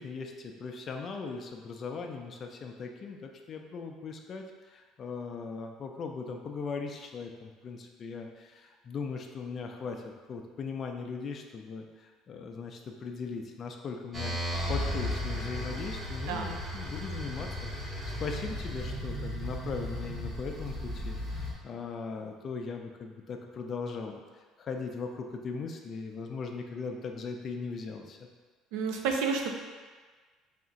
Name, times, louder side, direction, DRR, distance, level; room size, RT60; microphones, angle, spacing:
voice 1, 0.0-28.3, left 4 dB, 35° left, 3 dB, 0.4 m, -39 dB
sound 1, 14.1-21.5, left 1 dB, 20° right, 0.8 m, -35 dB
voice 2, 28.7-29.5, right 5 dB, 90° right, 2 dB, 0.5 m, -30 dB
3.5 x 2.4 x 3.9 m, 1.4 s
cardioid pair, 140°, 0 cm